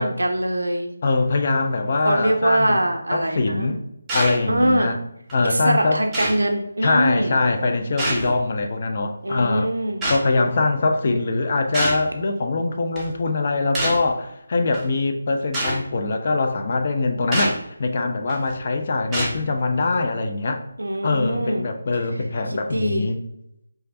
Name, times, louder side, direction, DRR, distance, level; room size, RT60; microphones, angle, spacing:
voice 1, 0.0-0.9 2.0-3.8 4.5-5.0 5.4-7.4 9.2-10.1 20.8-21.7 22.7-23.1, right 1 dB, 75° right, 3 dB, 0.4 m, -22 dB
voice 2, 1.0-2.8 3.1-3.8 4.1-5.0 5.3-6.0 6.8-9.7 10.1-20.6 21.0-23.2, left 3 dB, 40° left, 5 dB, 0.3 m, -23 dB
sound 1, 4.1-4.4 5.3-5.4 6.1-6.5 8.0-8.4 10.0-10.2 11.7-12.1 13.0-13.1 13.7-14.1 14.7-14.8 15.5-15.8 17.3-17.6 18.3-18.5 19.1-19.4, right 1 dB, 10° right, 0.5 m, -25 dB
3.1 x 2.3 x 2.6 m, 0.81 s
figure-of-eight pair, 155°, 0 cm